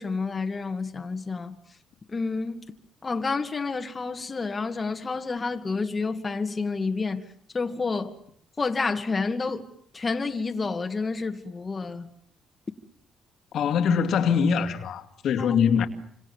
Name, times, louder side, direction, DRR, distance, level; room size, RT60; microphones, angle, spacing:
voice 1, 0.0-1.5 2.1-2.6 3.0-7.3 7.5-8.2 8.6-9.6 9.9-12.1 15.4-15.5, left 4 dB, 30° left, 2.2 m, -29 dB
voice 2, 13.5-15.9, left 7 dB, 70° left, 2.6 m, -23 dB
28.0 x 26.5 x 7.4 m
cardioid pair, 90°, 0 cm